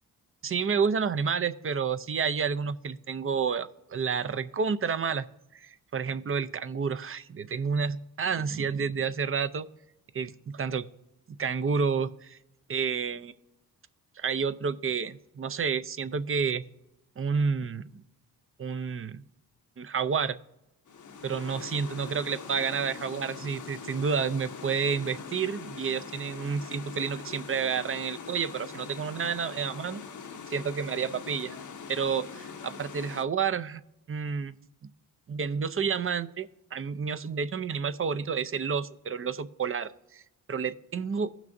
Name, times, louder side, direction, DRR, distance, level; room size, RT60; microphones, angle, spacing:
voice 1, 0.4-5.3 5.5-9.7 10.1-10.8 11.3-12.4 12.7-13.3 14.2-16.6 17.2-18.0 18.6-19.2 19.8-20.4 21.2-30.0 30.5-31.6 31.9-33.8 34.1-34.6 35.3-40.2 40.5-41.3, right 6 dB, 35° right, 13 dB, 0.5 m, -30 dB
sound 1, 20.9-33.2, left 5 dB, 50° left, 0.8 m, -42 dB
16.0 x 6.1 x 2.6 m, 0.88 s
cardioid pair, 60°, 38 cm